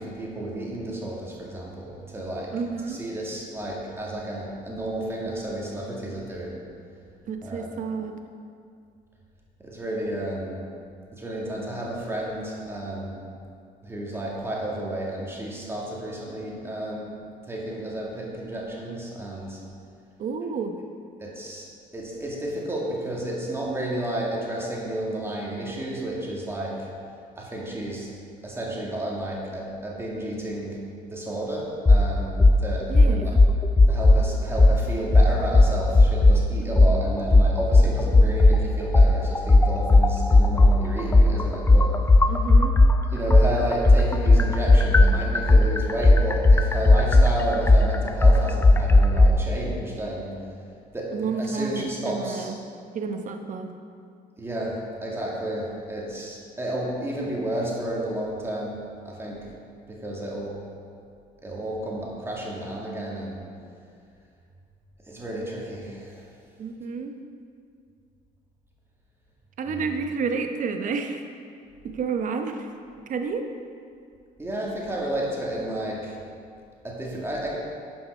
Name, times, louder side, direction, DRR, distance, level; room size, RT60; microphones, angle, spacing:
voice 1, 0.0-2.5 2.9-6.6 7.4-7.7 9.6-10.6 11.1-13.2 13.8-17.1 17.5-19.6 21.2-21.7 21.9-26.9 27.4-28.1 28.4-30.8 31.1-33.4 33.9-42.0 43.1-50.4 50.9-52.5 54.4-58.8 59.0-59.4 59.9-60.6 61.4-63.4 65.1-66.1 69.7-69.8 74.4-76.1 76.8-77.6, right 1 dB, 15° right, -4 dB, 2.1 m, -31 dB
voice 2, 2.5-3.0 7.3-8.2 20.2-20.7 32.9-33.4 42.3-42.8 51.1-52.6 52.9-53.7 66.6-67.2 69.6-71.2 71.8-72.7 73.1-73.5, right 5 dB, 50° right, 6 dB, 0.9 m, -30 dB
sound 1, 31.9-32.0 32.4-32.6 32.9-34.2 34.6-34.8 35.1-36.4 36.8-36.9 37.3-38.6 38.9-42.9 43.3-49.3, left 2 dB, 15° left, 0.4 m, -15 dB
10.5 x 5.9 x 5.4 m, 2.3 s
cardioid pair, 110°, 17 cm